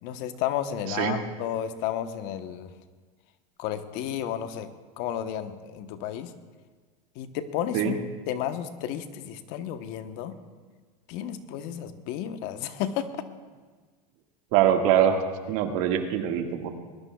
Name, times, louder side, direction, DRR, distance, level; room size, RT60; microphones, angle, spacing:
voice 1, 0.0-2.7 3.6-4.7 5.0-6.3 7.1-10.4 11.1-13.1, left 10 dB, 60° left, 9 dB, 1.1 m, -32 dB
voice 2, 0.9-1.2 7.7-8.0 14.5-15.2 15.5-16.7, right 9 dB, 65° right, 4 dB, 1.9 m, -23 dB
21.0 x 19.5 x 2.4 m, 1.5 s
supercardioid pair, 115°, 19 cm